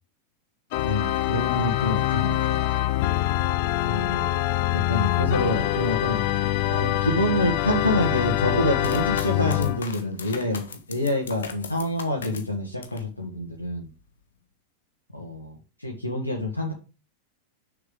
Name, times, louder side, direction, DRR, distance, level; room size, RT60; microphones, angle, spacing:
Organ, 0.7-9.8, left 15 dB, 50° left, 0.6 m, -24 dB
voice 1, 0.8-2.7 3.8-4.3 4.7-6.2 6.7-13.9 15.1-16.7, left 1 dB, 85° left, 0 dB, 1.6 m, -27 dB
sound 1, 8.8-13.1 13.5-14.2, left 6 dB, 65° left, 1.2 m, -39 dB
6.8 x 6.6 x 3.8 m, 0.32 s
figure-of-eight pair, 90°, 0 cm